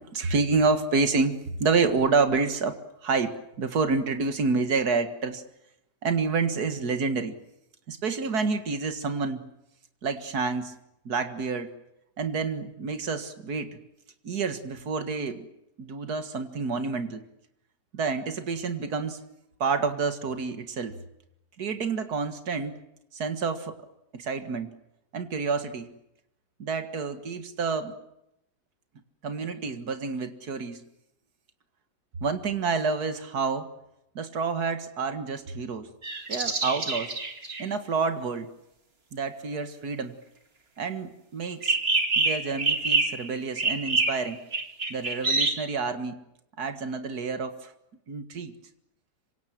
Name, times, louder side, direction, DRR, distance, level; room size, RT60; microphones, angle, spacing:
voice 1, 0.0-5.4 6.0-7.4 7.9-9.4 10.0-10.7 11.1-11.7 12.2-13.8 14.2-15.5 15.8-17.2 17.9-19.2 19.6-21.0 21.6-22.8 23.1-23.8 24.1-24.7 25.1-25.9 26.6-27.9 29.2-30.8 32.2-33.7 34.2-35.9 36.3-37.1 37.6-38.5 39.1-40.2 40.8-41.8 42.2-44.4 44.9-46.2 46.6-47.7 48.1-48.6, right 4 dB, 65° right, 9 dB, 2.3 m, -28 dB
sound 1, 36.0-37.6 41.6-43.3 43.6-45.6, right 3 dB, 35° right, 2.5 m, -26 dB
26.5 x 25.0 x 7.6 m, 0.82 s
omnidirectional pair, 1.8 m